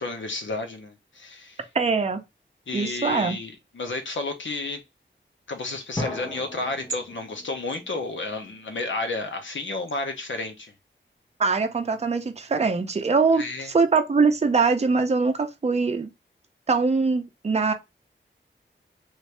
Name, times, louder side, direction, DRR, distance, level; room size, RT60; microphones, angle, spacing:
voice 1, 0.0-1.7 2.7-4.8 5.5-10.7 13.3-13.7, left 3 dB, 75° left, 0.9 m, -32 dB
voice 2, 1.7-2.2 2.7-3.4 11.4-13.4 13.7-16.1 16.7-17.7, right 4 dB, 35° right, 0.6 m, -22 dB
sound 1, 5.9-8.7, left 1 dB, 20° left, 1.1 m, -37 dB
3.2 x 2.7 x 3.3 m
wide cardioid pair, 85°, 20 cm